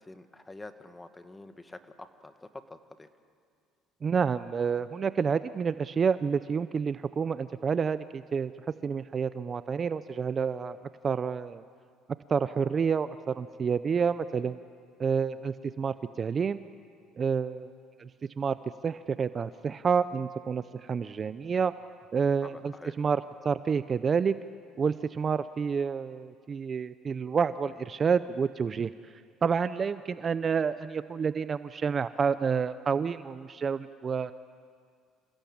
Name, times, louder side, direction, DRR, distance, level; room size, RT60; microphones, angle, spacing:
voice 1, 0.0-3.1 22.4-23.0, left 2 dB, 15° left, 9 dB, 1.6 m, -47 dB
voice 2, 4.0-8.5 8.8-10.8 11.0-11.6 12.3-14.6 15.0-16.6 17.2-17.7 18.0-18.1 18.4-18.6 18.8-21.7 22.1-22.7 23.0-24.4 24.8-28.9 29.4-34.3, right 6 dB, 35° right, 13 dB, 0.6 m, -29 dB
27.5 x 17.0 x 8.8 m, 2.1 s
supercardioid pair, 100°, 0 cm